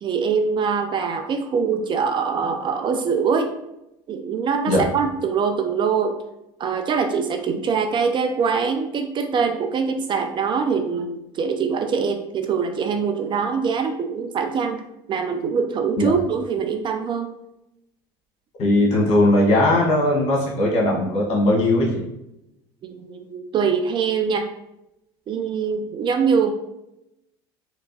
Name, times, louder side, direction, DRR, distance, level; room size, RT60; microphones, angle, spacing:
voice 1, 0.0-3.5 4.1-6.2 6.6-14.8 15.1-17.3 22.8-24.5 25.3-26.5, right 6 dB, 35° right, 6 dB, 0.4 m, -23 dB
voice 2, 18.6-22.0, left 1 dB, 55° left, -3 dB, 1.4 m, -19 dB
3.3 x 2.9 x 2.7 m, 0.86 s
supercardioid pair, 90°, 13 cm